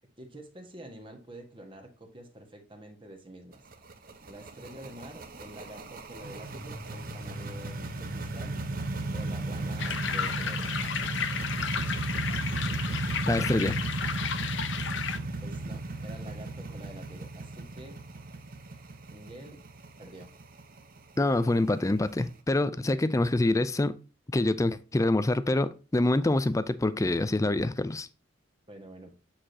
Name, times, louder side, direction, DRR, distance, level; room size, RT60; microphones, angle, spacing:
voice 1, 0.2-3.6 4.2-8.5 9.1-10.8 15.4-18.0 19.1-19.6 20.0-20.3 22.8-23.0 28.7-29.1, right 1 dB, 25° right, 1.5 m, -47 dB
sound 1, 3.5-22.3, right 2 dB, 50° right, 0.9 m, -35 dB
sound 2, 9.8-15.2, left 7 dB, 70° left, 0.7 m, -33 dB
voice 2, 13.3-13.8 21.2-24.0 24.3-28.1, left 2 dB, 15° left, 0.4 m, -26 dB
8.7 x 4.8 x 2.8 m
head